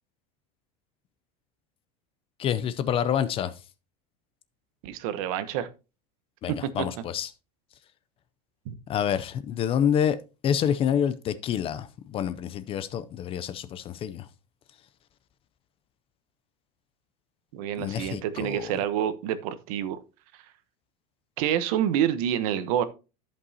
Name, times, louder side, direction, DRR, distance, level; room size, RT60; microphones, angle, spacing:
voice 1, 2.4-3.5 6.4-7.3 8.9-10.2 10.4-14.3 17.8-18.7, left 9 dB, 30° left, 0.5 m, -27 dB
voice 2, 4.8-5.7 6.5-6.9 8.7-8.8 17.5-20.0 21.4-22.8, right 10 dB, 65° right, 1.0 m, -27 dB
14.0 x 5.4 x 2.8 m
supercardioid pair, 150°, 20 cm